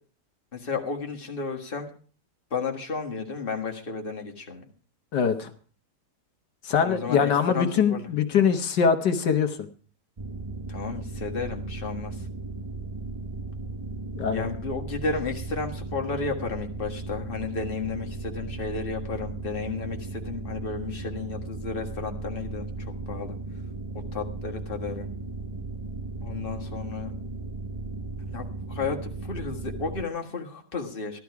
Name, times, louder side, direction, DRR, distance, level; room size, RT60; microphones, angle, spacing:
voice 1, 0.5-1.9 2.5-4.6 6.8-8.1 10.7-12.3 14.3-22.7 23.1-23.4 24.1-25.1 26.2-27.1 28.3-31.2, left 4 dB, 35° left, 2 dB, 1.8 m, -33 dB
voice 2, 5.1-5.5 6.6-9.6 14.1-14.5, left 7 dB, 85° left, 7 dB, 1.8 m, -23 dB
sound 1, 10.2-30.0, right 3 dB, 45° right, 0.4 m, -36 dB
14.5 x 12.0 x 4.7 m, 0.42 s
omnidirectional pair, 1.8 m